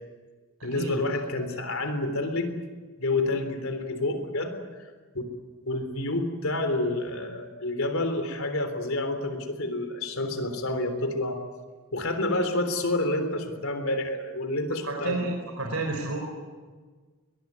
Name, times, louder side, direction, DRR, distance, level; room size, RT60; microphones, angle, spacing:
voice 1, 0.6-2.6 3.0-4.5 5.1-5.3 5.7-11.4 11.9-15.3, left 2 dB, 75° left, 7 dB, 3.6 m, -28 dB
voice 2, 14.8-16.2, right 2 dB, 85° right, 1 dB, 4.6 m, -31 dB
22.0 x 21.0 x 9.6 m, 1.4 s
head